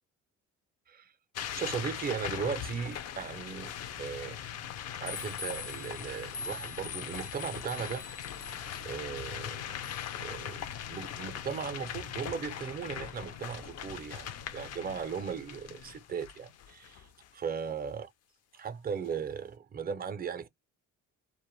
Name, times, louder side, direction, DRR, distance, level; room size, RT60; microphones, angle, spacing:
sound 1, 1.4-17.3, left 10 dB, 55° left, 0.4 m, -41 dB
voice 1, 1.5-3.7 4.0-4.4 4.9-8.0 8.8-9.8 10.2-18.1 18.5-20.5, right 6 dB, 30° right, 0.4 m, -37 dB
sound 2, 2.1-15.9, left 4 dB, 80° left, 0.9 m, -47 dB
2.2 x 2.1 x 3.0 m
cardioid pair, 100°, 31 cm